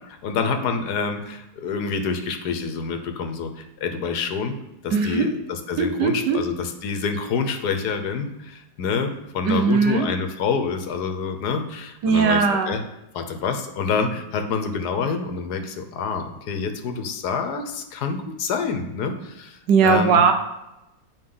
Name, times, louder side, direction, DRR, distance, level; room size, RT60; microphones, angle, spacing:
voice 1, 0.2-4.6 4.8-12.8 13.1-20.2, left 5 dB, 70° left, 7 dB, 1.3 m, -27 dB
voice 2, 4.9-5.3 5.8-6.4 9.4-10.1 12.0-12.8 19.7-20.3, right 5 dB, 90° right, 5 dB, 1.5 m, -19 dB
9.6 x 4.9 x 3.8 m, 0.91 s
omnidirectional pair, 1.8 m